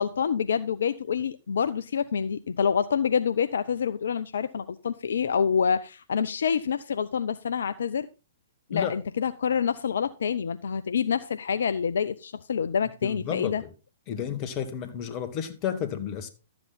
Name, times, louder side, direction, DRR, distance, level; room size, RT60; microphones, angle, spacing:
voice 1, 0.0-8.1 8.7-13.6, left 7 dB, 70° left, 0.5 m, -27 dB
voice 2, 13.0-13.7 14.1-16.3, left 9 dB, 35° left, 1.7 m, -32 dB
12.5 x 7.8 x 4.1 m
figure-of-eight pair, 115°, 0 cm